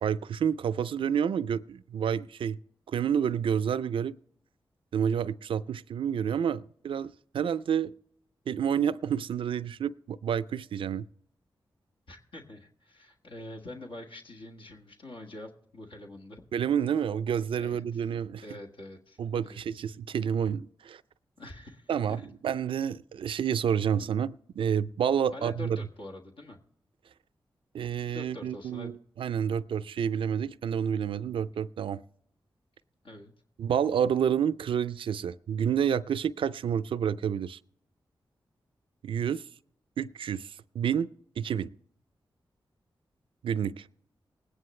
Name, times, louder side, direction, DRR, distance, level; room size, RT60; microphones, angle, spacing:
voice 1, 0.0-2.6 2.9-4.2 4.9-7.9 8.5-11.1 16.5-18.4 19.2-21.0 21.9-25.8 27.7-32.0 33.6-37.6 39.0-39.5 40.0-41.1 41.4-41.7 43.4-43.9, right 8 dB, 85° right, 0.4 m, -29 dB
voice 2, 12.1-16.5 17.6-18.1 18.4-19.6 21.4-22.3 25.3-26.6 28.1-28.9 33.0-33.3, left 1 dB, 75° left, 1.6 m, -45 dB
20.0 x 9.6 x 3.2 m
cardioid pair, 50°, 9 cm